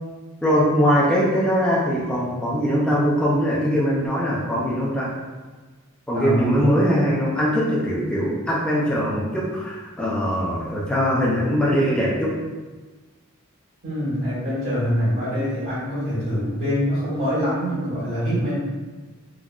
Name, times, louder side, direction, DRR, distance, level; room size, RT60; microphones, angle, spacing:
voice 1, 0.4-5.1 6.1-12.4, equal, 5° left, -6 dB, 0.4 m, -21 dB
voice 2, 6.1-6.7 13.8-18.6, equal, 70° right, -15 dB, 1.4 m, -24 dB
3.6 x 2.0 x 2.3 m, 1.3 s
head